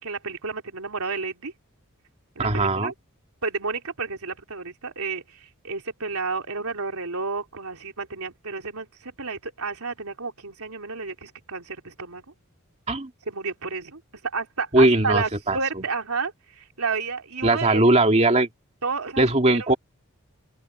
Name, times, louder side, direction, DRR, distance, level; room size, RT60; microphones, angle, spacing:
voice 1, 0.0-1.5 2.3-2.9 3.4-12.2 13.3-17.8 18.8-19.4, right 4 dB, 80° right, 3.2 m, -31 dB
voice 2, 2.4-2.9 12.9-13.1 14.7-15.6 17.4-18.5 19.2-19.7, right 2 dB, 30° right, 2.4 m, -19 dB
open air
head